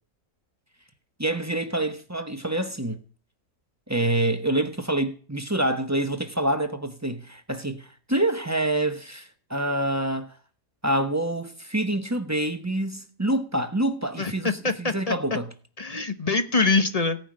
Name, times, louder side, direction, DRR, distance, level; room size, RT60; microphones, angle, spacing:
voice 1, 1.2-3.0 3.9-10.3 10.8-15.5, right 1 dB, 15° right, 0.9 m, -26 dB
voice 2, 14.2-15.1 15.8-17.2, left 3 dB, 30° left, 1.0 m, -24 dB
17.5 x 5.9 x 8.8 m
omnidirectional pair, 1.5 m